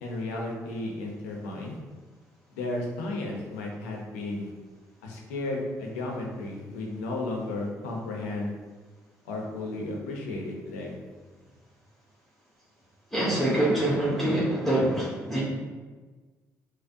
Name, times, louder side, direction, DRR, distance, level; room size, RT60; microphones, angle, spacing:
voice 1, 0.0-1.8 2.5-4.5 5.0-8.5 9.2-10.9, left 2 dB, 85° left, 0 dB, 0.6 m, -33 dB
voice 2, 13.1-15.4, right 1 dB, ahead, -7 dB, 1.2 m, -25 dB
5.2 x 2.1 x 2.6 m, 1.3 s
hypercardioid pair, 45°, 8 cm